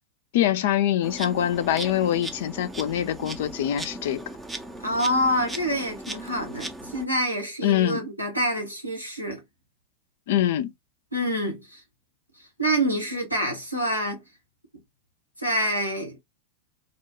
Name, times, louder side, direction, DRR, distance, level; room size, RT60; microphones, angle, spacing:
voice 1, 0.3-4.2 7.6-8.0 10.3-10.7, left 11 dB, 55° left, 0.4 m, -24 dB
Insect, 1.0-7.0, right 2 dB, 10° right, 0.5 m, -38 dB
voice 2, 4.8-9.4 11.1-11.8 12.6-14.2 15.4-16.2, equal, 90° right, 1.0 m, -27 dB
2.7 x 2.2 x 2.8 m
figure-of-eight pair, 90°, 0 cm